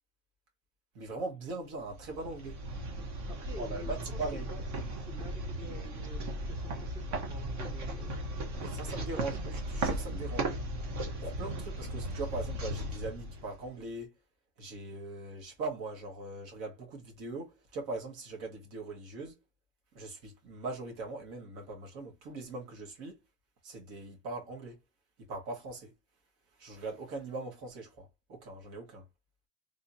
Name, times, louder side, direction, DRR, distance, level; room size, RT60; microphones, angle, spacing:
voice 1, 0.9-2.6 3.6-4.5 8.6-9.4 9.7-10.5 11.2-14.1 14.6-19.4 19.9-23.2 23.6-24.8 25.3-25.9 26.6-29.0, right 3 dB, 65° right, 1.6 m, -40 dB
sound 1, 1.8-13.9, right 1 dB, 45° right, 1.0 m, -37 dB
voice 2, 3.3-4.6 5.0-8.4 8.6-9.6, equal, 10° right, 0.6 m, -48 dB
3.5 x 2.9 x 2.7 m
cardioid pair, 170°, 41 cm